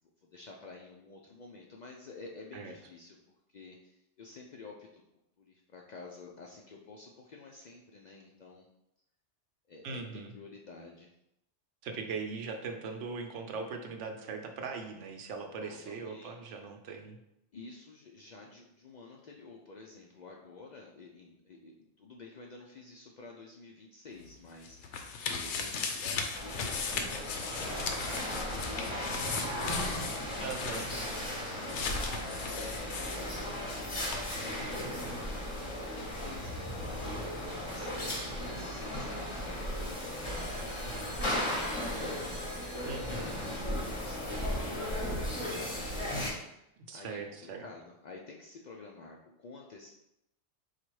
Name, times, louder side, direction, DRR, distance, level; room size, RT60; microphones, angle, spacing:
voice 1, 0.2-3.2 3.5-5.0 5.4-8.7 9.7-11.1 15.6-16.6 17.5-30.4 31.6-36.9 37.5-40.1 40.4-45.9 46.5-46.6 46.9-49.9, left 3 dB, 60° left, -1 dB, 0.4 m, -51 dB
voice 2, 9.8-10.3 11.8-17.2 30.4-30.9 42.8-43.3 46.9-47.7, right 4 dB, 90° right, 4 dB, 1.0 m, -40 dB
sound 1, 24.2-33.8 34.1-34.2, left 5 dB, 80° left, 0.9 m, -37 dB
sound 2, 26.3-46.3, left 1 dB, 30° left, 0.8 m, -36 dB
Telephone, 38.4-39.8 40.2-43.6, equal, 10° left, 1.1 m, -51 dB
4.1 x 2.4 x 4.6 m, 0.84 s
omnidirectional pair, 1.2 m